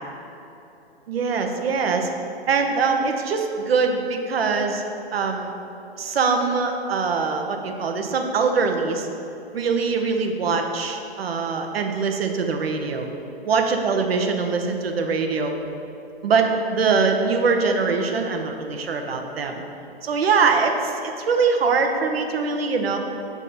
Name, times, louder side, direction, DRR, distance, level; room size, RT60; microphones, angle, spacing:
voice 1, 1.1-2.1 2.5-4.8 5.1-5.5 6.0-9.1 9.5-13.1 13.5-15.5 16.2-19.6 20.0-23.0, right 4 dB, 70° right, 4 dB, 0.8 m, -23 dB
6.8 x 3.5 x 4.3 m, 3.0 s
hypercardioid pair, 130°, 31 cm